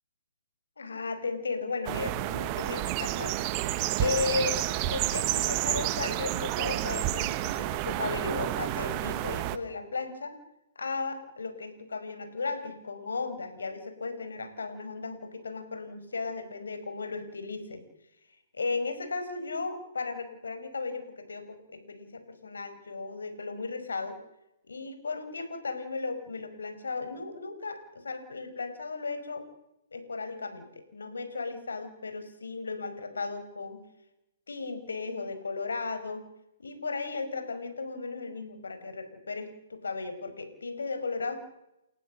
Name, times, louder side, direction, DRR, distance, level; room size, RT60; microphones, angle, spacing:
voice 1, 0.8-3.4 4.0-4.6 4.9-10.3 10.8-17.8 18.5-24.2 24.7-29.4 29.9-33.8 34.5-36.2 36.6-41.4, left 4 dB, 75° left, 9 dB, 5.2 m, -35 dB
sound 1, 1.8-9.6, right 14 dB, 30° right, 1.3 m, -30 dB
30.0 x 15.0 x 7.7 m, 0.89 s
figure-of-eight pair, 130°, 0 cm